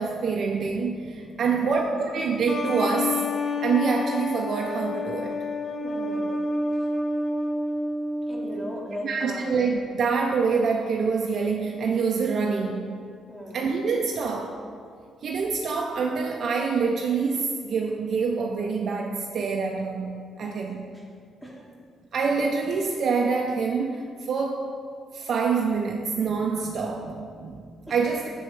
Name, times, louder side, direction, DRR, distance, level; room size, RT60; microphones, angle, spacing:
voice 1, 0.0-3.2 3.6-5.4 9.0-13.0 13.5-14.6 15.2-20.9 22.1-24.7 25.1-28.3, right 5 dB, 65° right, 1 dB, 0.4 m, -26 dB
voice 2, 1.4-1.8 5.8-6.3 6.7-6.9 8.2-9.5 13.3-13.7 20.9-21.0 21.4-21.6 27.9-28.0, equal, 10° left, -3 dB, 1.5 m, -38 dB
sound 1, 2.5-8.8, left 2 dB, 40° left, 0.6 m, -29 dB
5.3 x 4.4 x 4.9 m, 2.2 s
supercardioid pair, 60°, 0 cm